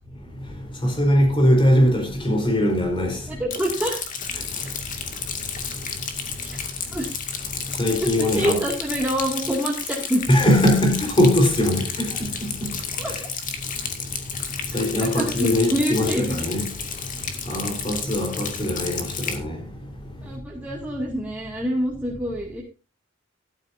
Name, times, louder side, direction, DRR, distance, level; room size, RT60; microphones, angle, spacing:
voice 1, 0.8-3.2 7.8-8.6 10.3-12.1 12.6-12.7 14.7-16.7 17.5-19.6, equal, 25° left, 4.3 m, -20 dB
voice 2, 3.3-4.0 6.4-6.6 6.9-7.1 8.2-10.2 13.0-13.3 15.0-16.3 20.2-22.6, equal, 10° right, 2.3 m, -26 dB
Rain, 3.5-19.4, left 6 dB, 40° left, 2.2 m, -32 dB
13.5 x 12.5 x 2.7 m
head